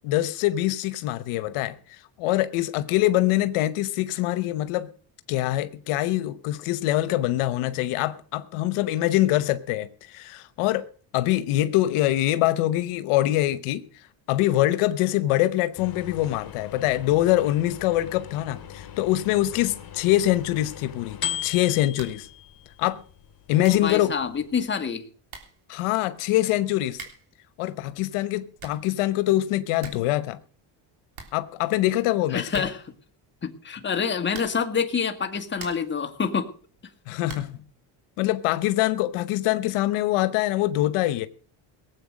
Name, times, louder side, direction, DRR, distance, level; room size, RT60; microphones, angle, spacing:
voice 1, 0.0-4.9 5.3-10.9 11.1-13.8 14.3-22.3 22.8-23.0 23.5-24.1 25.7-27.0 27.6-30.4 31.3-32.7 37.1-37.6 38.2-41.3, left 15 dB, 90° left, 1.0 m, -24 dB
sound 1, 15.8-24.6, left 11 dB, 45° left, 2.2 m, -39 dB
sound 2, 21.9-22.3 22.6-22.7 23.3-23.4 23.6-23.9 24.9-25.0 25.3-25.6 26.9-27.4 28.3-28.9 29.3-29.4 29.6-30.1 30.4-30.5 30.8-30.9 31.1-31.9 32.5-33.0 34.3-34.8 35.2-36.0 37.2-37.6, right 5 dB, 70° right, 3.5 m, -44 dB
voice 2, 23.5-25.0 32.3-32.8 33.4-36.5, left 6 dB, 20° left, 1.6 m, -27 dB
18.5 x 8.0 x 6.3 m
cardioid pair, 115°, 49 cm